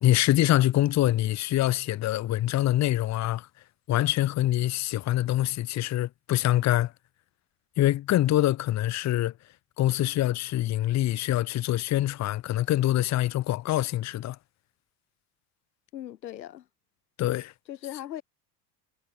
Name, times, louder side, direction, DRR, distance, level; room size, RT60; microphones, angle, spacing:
voice 1, 0.0-3.5 3.9-6.9 7.8-9.3 9.8-14.4 17.2-17.5, left 14 dB, 35° left, 0.7 m, -25 dB
voice 2, 15.9-16.7 17.7-18.2, left 12 dB, 90° left, 3.7 m, -38 dB
hypercardioid pair, 85°, 50 cm